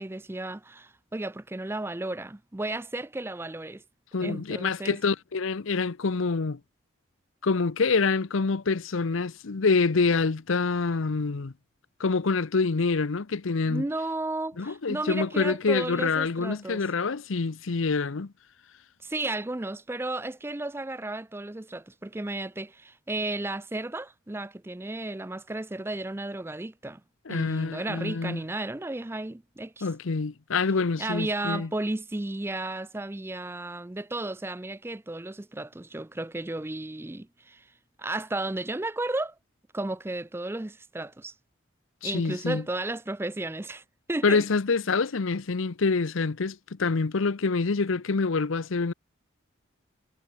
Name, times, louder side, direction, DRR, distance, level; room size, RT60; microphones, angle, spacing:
voice 1, 0.0-3.8 4.2-5.0 13.6-16.8 19.0-27.0 27.3-29.9 31.0-37.7 38.0-39.4 39.7-41.3 42.0-43.8 44.1-44.4, right 2 dB, 10° right, 0.4 m, -33 dB
voice 2, 4.1-6.6 7.4-11.5 12.0-13.8 14.6-18.3 27.3-28.4 29.8-31.7 42.0-42.6 44.2-48.9, left 4 dB, 75° left, 0.7 m, -26 dB
head